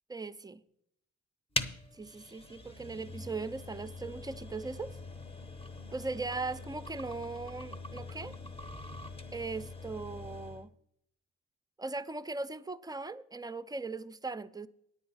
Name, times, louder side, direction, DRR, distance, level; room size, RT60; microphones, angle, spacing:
voice 1, 0.1-0.6 1.9-5.0 5.9-8.4 9.3-10.7 11.8-14.7, right 3 dB, 15° right, 0.5 m, -39 dB
sound 1, 1.5-10.7, left 2 dB, 20° left, 0.9 m, -43 dB
9.5 x 8.4 x 5.7 m
cardioid pair, 90°, 30 cm